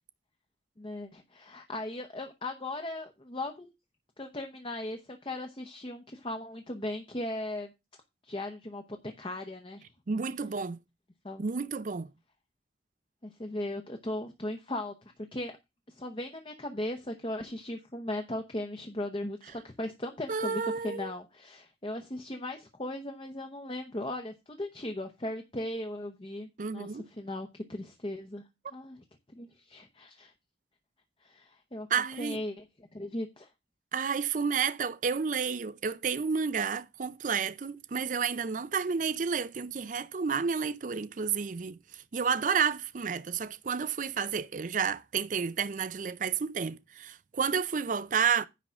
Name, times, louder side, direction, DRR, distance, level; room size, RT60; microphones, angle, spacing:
voice 1, 0.8-3.7 4.2-7.7 8.2-9.9 11.2-11.5 13.2-14.9 15.3-15.6 15.9-28.4 28.7-29.0 29.3-30.3 31.2-31.9 32.2-32.7 32.9-33.5, left 1 dB, 30° left, 0.9 m, -37 dB
voice 2, 10.1-10.8 11.4-12.1 20.3-21.1 26.6-27.1 31.9-32.4 33.9-48.5, right 6 dB, 45° right, 0.4 m, -31 dB
10.0 x 3.8 x 7.3 m
head